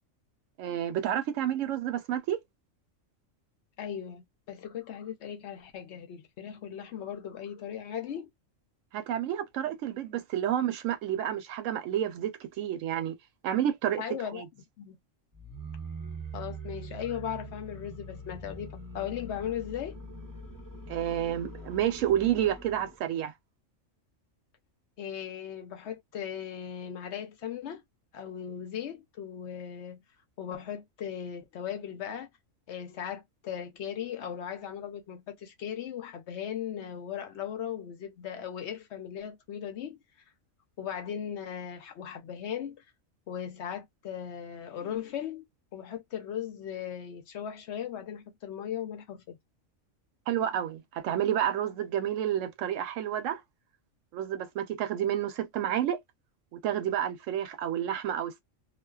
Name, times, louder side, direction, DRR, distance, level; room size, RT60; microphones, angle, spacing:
voice 1, 0.6-2.4 8.9-12.3 12.6-13.1 13.4-14.0 14.3-14.5 20.9-23.3 50.3-53.4 54.1-56.0 56.5-58.4, right 10 dB, 75° right, 0.9 m, -30 dB
voice 2, 3.8-8.3 14.0-14.4 14.8-15.0 16.3-20.0 25.0-27.8 28.1-30.0 30.4-32.3 32.7-40.0 40.8-42.8 43.3-45.4 45.7-49.4, left 9 dB, 65° left, 0.8 m, -38 dB
sound 1, 15.3-23.0, right 2 dB, 20° right, 0.7 m, -43 dB
2.4 x 2.3 x 2.2 m
omnidirectional pair, 1.4 m